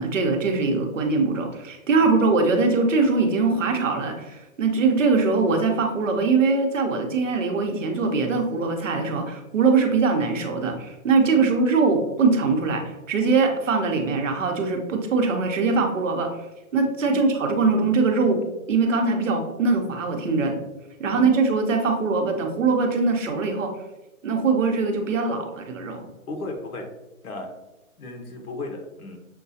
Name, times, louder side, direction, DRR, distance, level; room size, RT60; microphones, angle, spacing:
voice 1, 0.0-16.3 16.7-20.6 21.0-23.7 24.2-26.1, right 4 dB, 60° right, 4 dB, 0.9 m, -22 dB
voice 2, 26.3-26.9 27.2-27.5 28.0-29.2, left 2 dB, 80° left, 4 dB, 1.0 m, -36 dB
6.5 x 2.3 x 2.7 m, 1.0 s
hypercardioid pair, 165°, 43 cm